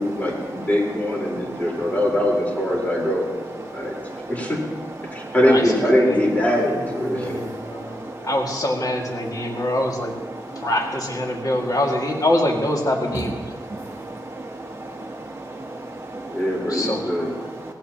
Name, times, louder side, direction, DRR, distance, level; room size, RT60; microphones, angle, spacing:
voice 1, 0.0-3.3 3.7-4.0 4.3-4.6 5.1-7.4 16.3-17.3, equal, 20° left, -2 dB, 4.2 m, -22 dB
voice 2, 3.7-4.3 5.0-5.3 7.8-8.3 9.4-9.7 10.3-10.7 13.7-14.2 14.4-16.3, right 2 dB, 30° right, 0 dB, 1.1 m, -36 dB
voice 3, 7.0-8.0 8.2-10.1 10.6-13.4 16.6-17.3, left 1 dB, 50° left, 0 dB, 2.2 m, -24 dB
17.5 x 16.5 x 3.0 m, 1.4 s
wide cardioid pair, 75°, 8 cm